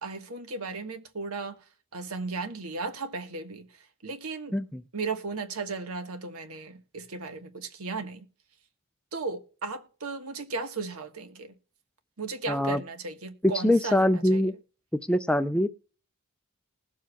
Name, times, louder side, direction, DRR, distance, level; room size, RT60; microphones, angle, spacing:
voice 1, 0.0-1.6 1.9-3.7 4.0-4.6 4.9-8.2 9.1-11.5 12.2-14.4, right 4 dB, 80° right, 1.4 m, -35 dB
voice 2, 12.5-12.8 13.6-14.5 15.1-15.7, left 1 dB, 5° left, 0.4 m, -23 dB
20.0 x 7.4 x 2.2 m
head